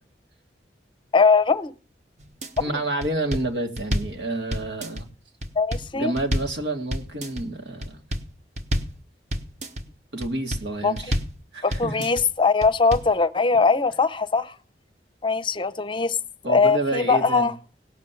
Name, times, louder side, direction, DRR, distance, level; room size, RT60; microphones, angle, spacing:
voice 1, 1.1-1.7 5.6-6.1 10.8-10.9 11.6-14.5 15.2-16.2 16.4-17.5, left 4 dB, 30° left, 0.7 m, -21 dB
sound 1, 2.2-2.6 3.0-4.2 4.5-5.0 5.4-6.6 6.9-7.4 7.8-8.3 8.6-9.0 9.3-9.8 10.2-10.7 11.0-11.4 11.7-12.2 12.6-13.1, equal, 40° right, 1.2 m, -28 dB
voice 2, 2.6-5.1 5.9-8.0 10.1-11.2 11.5-11.9 16.4-17.5, right 2 dB, 90° right, 2.2 m, -29 dB
17.5 x 7.0 x 7.5 m
head